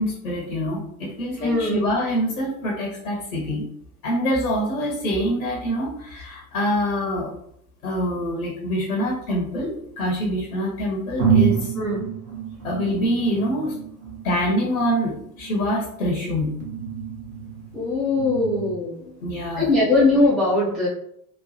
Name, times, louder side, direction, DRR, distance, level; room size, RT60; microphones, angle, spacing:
voice 1, 0.0-3.7 4.0-7.3 7.8-11.7 12.6-13.7 14.2-16.5 19.2-19.7, equal, 75° left, -2 dB, 0.8 m, -25 dB
voice 2, 1.4-1.8 11.8-12.1 17.7-19.0 19.6-20.9, left 2 dB, ahead, -8 dB, 0.3 m, -20 dB
sound 1, 8.8-10.1 10.7-10.8 11.2-18.7, right 7 dB, 30° right, 1.0 m, -28 dB
2.9 x 2.1 x 2.7 m, 0.70 s
figure-of-eight pair, 80°, 44 cm